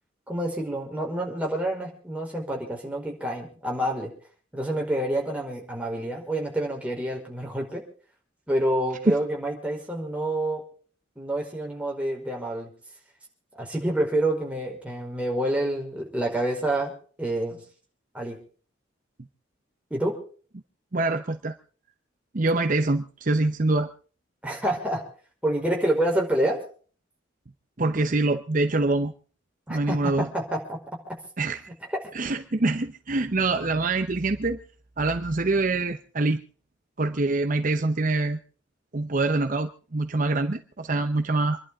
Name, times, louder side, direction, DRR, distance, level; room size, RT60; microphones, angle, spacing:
voice 1, 0.3-4.1 4.5-7.8 8.5-10.6 11.2-12.7 13.6-16.9 17.2-17.6 18.1-18.4 19.9-20.2 24.4-25.0 25.4-26.6 29.7-30.8, right 1 dB, 5° right, 0 dB, 4.9 m, -27 dB
voice 2, 20.9-21.6 22.3-23.9 27.8-29.1 29.7-30.3 31.4-31.7 32.1-34.6 35.0-36.4 37.0-38.4 38.9-41.6, right 2 dB, 45° right, 7 dB, 0.8 m, -25 dB
27.5 x 11.5 x 3.6 m, 0.42 s
head